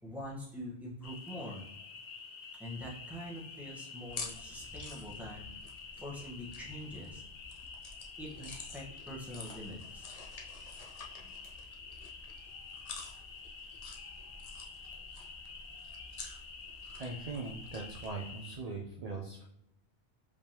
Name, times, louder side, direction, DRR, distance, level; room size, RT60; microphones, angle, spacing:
voice 1, 0.0-1.7 2.6-5.5 6.0-7.2 8.2-10.1, left 1 dB, ahead, -4 dB, 1.1 m, -44 dB
sound 1, 1.0-18.6, left 5 dB, 75° left, 1.0 m, -49 dB
sound 2, 4.0-18.1, left 4 dB, 45° left, 0.6 m, -49 dB
voice 2, 17.0-19.4, right 3 dB, 45° right, 0 dB, 0.6 m, -40 dB
4.9 x 3.5 x 2.9 m, 0.78 s
omnidirectional pair, 1.1 m